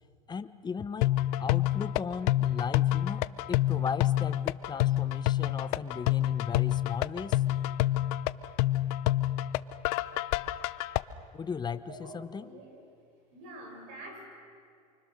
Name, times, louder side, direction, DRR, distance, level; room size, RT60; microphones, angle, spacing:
voice 1, 0.3-1.1 1.4-7.4 11.3-12.6, left 6 dB, 20° left, 13 dB, 1.0 m, -37 dB
sound 1, 1.0-11.0, left 15 dB, 70° left, 0.7 m, -28 dB
voice 2, 11.9-12.7 13.3-14.3, right 1 dB, 70° right, 2 dB, 7.2 m, -46 dB
28.0 x 24.5 x 6.5 m, 2.3 s
supercardioid pair, 105°, 20 cm